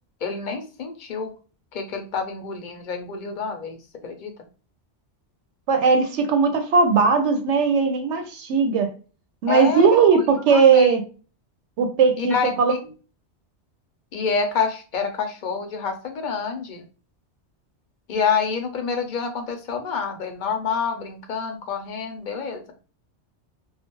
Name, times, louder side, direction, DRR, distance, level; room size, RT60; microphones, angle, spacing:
voice 1, 0.2-1.3 1.7-4.3 9.5-10.0 10.5-10.9 12.2-12.8 14.1-16.8 18.1-22.7, left 5 dB, 50° left, 4 dB, 0.7 m, -27 dB
voice 2, 5.7-8.9 9.4-11.0 11.8-12.7, right 5 dB, 80° right, 6 dB, 0.9 m, -18 dB
2.4 x 2.3 x 2.9 m, 0.36 s
omnidirectional pair, 1.2 m